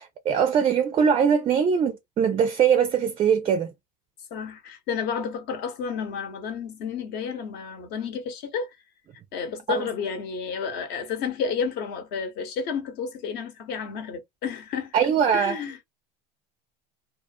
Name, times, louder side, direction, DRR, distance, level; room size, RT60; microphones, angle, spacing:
voice 1, 0.0-3.7 9.7-9.8 14.9-15.6, right 7 dB, 30° right, 0.4 m, -22 dB
voice 2, 4.3-8.7 9.3-14.9 15.3-15.8, left 6 dB, 55° left, 1.0 m, -31 dB
2.4 x 2.4 x 2.5 m
supercardioid pair, 110°, 20 cm